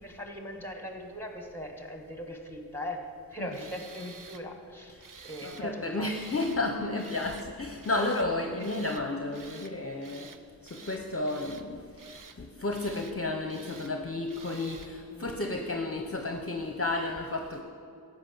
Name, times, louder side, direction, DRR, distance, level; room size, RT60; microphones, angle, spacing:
voice 1, 0.0-6.1 8.6-8.7 15.1-15.3, equal, 5° left, 3 dB, 1.9 m, -40 dB
Tools, 3.5-4.4 5.0-5.7 6.1-6.6 7.0-7.5 7.8-8.3 8.6-9.0 9.3-9.7 10.0-10.4 10.7-11.7 12.0-12.4 12.7-13.2 13.5-13.9 14.3-14.9, right 5 dB, 55° right, 0.8 m, -50 dB
voice 2, 5.4-10.4 10.6-17.6, left 2 dB, 35° left, 3 dB, 0.9 m, -32 dB
14.5 x 5.9 x 8.8 m, 2.5 s
wide cardioid pair, 50°, 39 cm